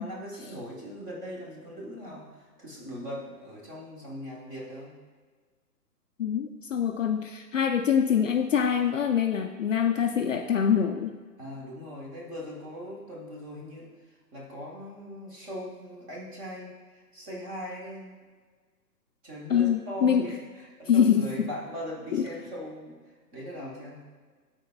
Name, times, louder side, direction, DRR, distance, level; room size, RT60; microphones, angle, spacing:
voice 1, 0.0-4.9 11.4-13.9 14.3-18.1 19.2-23.0 23.3-24.0, equal, 15° right, -3 dB, 1.0 m, -40 dB
voice 2, 6.2-11.1 19.5-20.3 20.9-21.5 22.1-22.2, left 8 dB, 50° left, 5 dB, 0.5 m, -24 dB
12.5 x 4.4 x 2.3 m, 1.5 s
hypercardioid pair, 140°, 50 cm